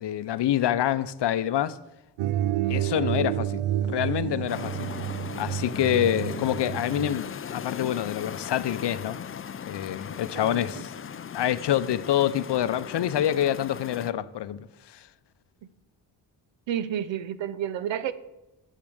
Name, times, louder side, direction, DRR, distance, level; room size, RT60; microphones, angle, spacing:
voice 1, 0.0-1.8 2.7-4.9 5.3-9.2 9.6-10.9 11.3-15.1, left 11 dB, 60° left, 0.7 m, -27 dB
sound 1, 2.2-7.2, right 12 dB, 80° right, 0.5 m, -29 dB
sound 2, 4.5-14.1, left 8 dB, 30° left, 0.5 m, -38 dB
voice 2, 10.3-10.8 16.7-18.1, right 10 dB, 65° right, 0.9 m, -31 dB
8.6 x 7.6 x 7.7 m
supercardioid pair, 65°, 49 cm